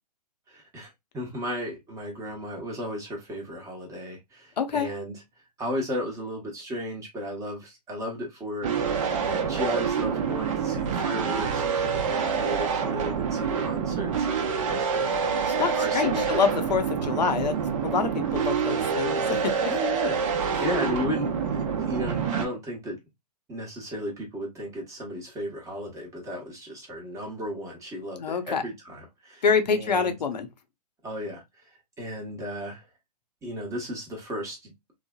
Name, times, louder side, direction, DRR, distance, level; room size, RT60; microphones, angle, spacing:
voice 1, 0.5-5.1 5.6-16.4 19.7-23.0 23.5-29.4 29.7-30.1 31.0-31.7 32.0-32.8 33.4-34.7, equal, 15° right, 0.9 m, -35 dB
voice 2, 4.6-4.9 15.5-19.7 28.2-28.6 29.4-30.5, left 6 dB, 80° left, 0.7 m, -26 dB
sound 1, 8.6-22.5, right 6 dB, 50° right, 0.6 m, -27 dB
3.1 x 2.0 x 2.2 m
hypercardioid pair, 125°, 21 cm